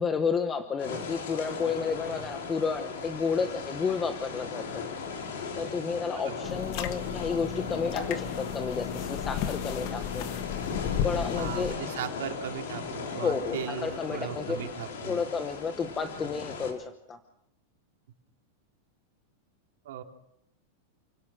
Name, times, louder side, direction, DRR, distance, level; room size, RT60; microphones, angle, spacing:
voice 1, 0.0-4.8 5.6-10.3 11.0-11.7 13.2-14.6 15.1-17.2, left 5 dB, 15° left, 8 dB, 1.0 m, -31 dB
sound 1, 0.8-16.7, left 5 dB, 75° left, 5.4 m, -37 dB
voice 2, 6.1-6.5 11.4-15.2 19.8-20.0, right 10 dB, 70° right, 4 dB, 2.9 m, -38 dB
sound 2, 6.4-11.8, left 9 dB, 40° left, 1.5 m, -34 dB
29.0 x 18.0 x 6.2 m, 0.82 s
supercardioid pair, 175°, 0 cm